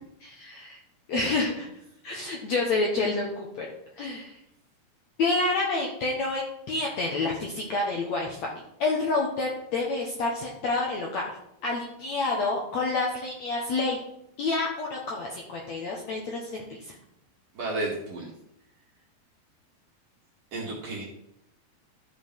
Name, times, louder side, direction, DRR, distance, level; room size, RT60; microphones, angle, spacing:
voice 1, 0.2-0.8 1.1-1.7 2.0-3.7 4.0-4.3 5.2-6.4 6.7-11.3 11.6-14.0 14.4-17.0, left 3 dB, 65° left, -2 dB, 1.9 m, -28 dB
voice 2, 17.5-18.3 20.5-21.0, right 2 dB, 45° right, -3 dB, 2.5 m, -32 dB
13.0 x 5.3 x 4.6 m, 0.78 s
omnidirectional pair, 4.6 m